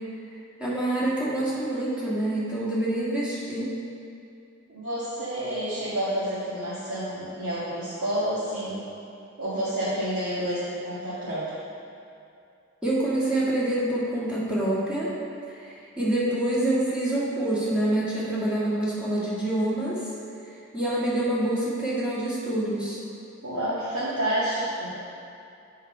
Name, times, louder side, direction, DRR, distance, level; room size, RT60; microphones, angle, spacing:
voice 1, 0.6-3.7 12.8-15.1 15.5-20.1 20.7-23.0, right 1 dB, 5° right, -9 dB, 1.9 m, -26 dB
voice 2, 4.7-8.8 9.4-11.4 23.4-24.9, right 1 dB, 90° right, -12 dB, 1.8 m, -29 dB
7.6 x 4.6 x 5.5 m, 2.6 s
head